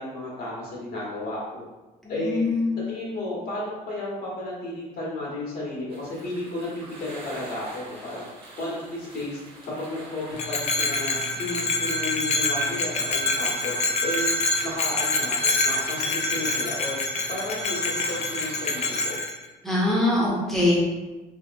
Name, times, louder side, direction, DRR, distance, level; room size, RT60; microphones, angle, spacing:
voice 1, 0.0-1.7 2.1-2.4 2.8-8.3 8.6-9.4 9.8-13.7 14.0-17.0 17.3-19.1, left 1 dB, 70° left, -6 dB, 1.1 m, -33 dB
voice 2, 2.0-2.9 19.6-20.8, left 2 dB, ahead, -5 dB, 0.9 m, -23 dB
sound 1, 5.9-19.1, right 1 dB, 30° right, 0.9 m, -44 dB
Bell, 10.4-19.3, left 2 dB, 40° left, 0.4 m, -26 dB
2.8 x 2.8 x 2.4 m, 1.2 s
cardioid pair, 110°, 17 cm